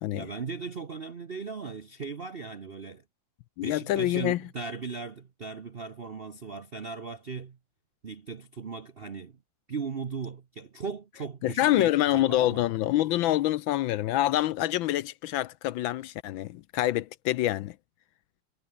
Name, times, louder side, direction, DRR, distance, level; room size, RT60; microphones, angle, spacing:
voice 1, 0.1-3.0 3.6-7.6 8.0-9.4 9.7-12.7, right 5 dB, 50° right, 0.7 m, -38 dB
voice 2, 3.6-4.4 11.4-17.7, left 14 dB, 75° left, 1.3 m, -26 dB
omnidirectional pair, 2.4 m